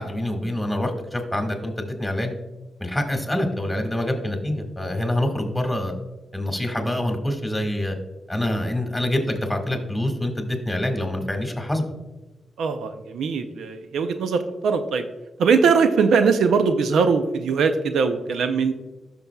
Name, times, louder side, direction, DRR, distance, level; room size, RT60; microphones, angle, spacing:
voice 1, 0.0-2.3 2.8-5.9 6.3-8.0 8.3-11.9, left 1 dB, 10° left, 3 dB, 1.8 m, -26 dB
voice 2, 12.6-15.1 15.4-18.7, right 5 dB, 80° right, 9 dB, 0.5 m, -21 dB
12.5 x 6.0 x 2.3 m, 1.1 s
supercardioid pair, 50°, 0 cm